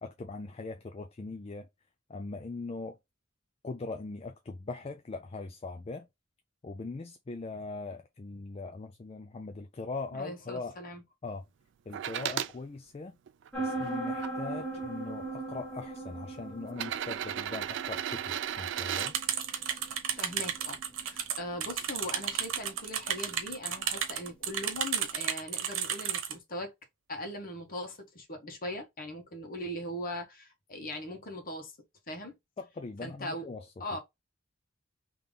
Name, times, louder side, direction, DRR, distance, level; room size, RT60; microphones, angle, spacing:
voice 1, 0.0-1.7 2.1-3.0 3.6-6.1 6.6-10.8 11.2-11.5 11.9-13.2 13.6-19.2 32.6-34.0, left 3 dB, 30° left, 0.4 m, -40 dB
voice 2, 10.1-11.0 20.2-26.7 27.1-31.7 32.1-32.3 33.0-33.5 33.8-34.0, left 1 dB, 45° left, 1.3 m, -40 dB
sound 1, 11.9-12.5 13.3-14.3 15.3-15.4 16.7-19.1 21.0-21.1, right 10 dB, 65° right, 0.3 m, -35 dB
sound 2, 13.5-25.0, right 2 dB, 5° left, 1.1 m, -41 dB
sound 3, 19.0-26.3, right 8 dB, 90° right, 1.0 m, -33 dB
3.4 x 3.0 x 3.6 m
head